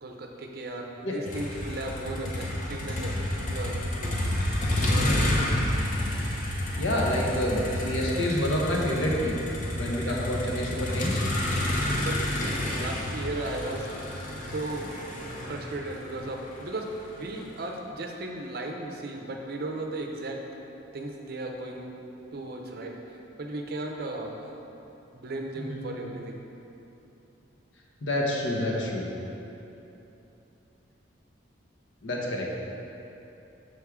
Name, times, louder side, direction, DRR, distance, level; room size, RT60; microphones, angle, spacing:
voice 1, 0.0-4.2 4.8-5.3 10.0-10.2 12.0-13.9 14.5-15.0 15.5-20.5 20.9-21.9 22.3-23.0 23.4-24.5 25.1-26.4, right 2 dB, 50° right, 2 dB, 0.5 m, -36 dB
Motor vehicle (road), 1.3-17.4, left 1 dB, 40° left, 0.6 m, -30 dB
voice 2, 6.8-9.4 9.7-11.2 15.3-15.5 25.7-25.8 28.0-29.0 32.0-32.5, left 1 dB, 75° left, -2 dB, 0.9 m, -28 dB
6.3 x 4.6 x 3.6 m, 2.9 s
head